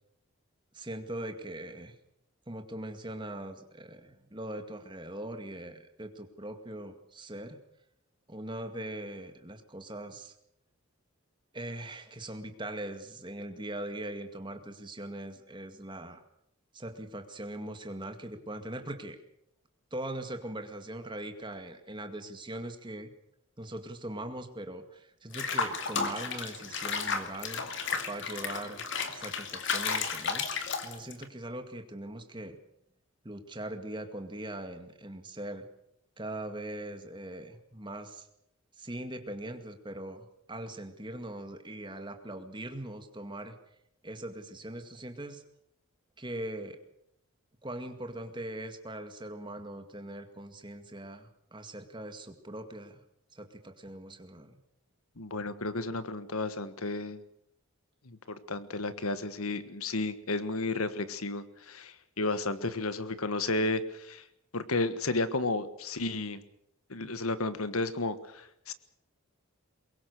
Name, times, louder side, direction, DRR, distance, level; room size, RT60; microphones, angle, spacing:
voice 1, 0.7-1.9 2.5-7.6 8.3-10.3 11.5-16.2 16.7-19.2 19.9-23.1 23.6-27.7 27.9-28.8 29.1-30.5 30.8-32.6 33.2-35.7 36.2-38.3 38.8-43.6 44.0-45.4 46.2-46.8 47.6-53.0 53.3-54.6, right 1 dB, 20° right, 6 dB, 2.1 m, -41 dB
Water / Bathtub (filling or washing), 25.3-31.2, left 5 dB, 55° left, 2.3 m, -33 dB
voice 2, 55.2-57.2 58.0-64.2 64.5-66.4 66.9-68.7, left 2 dB, 80° left, 12 dB, 1.5 m, -32 dB
23.5 x 22.0 x 6.8 m, 0.76 s
head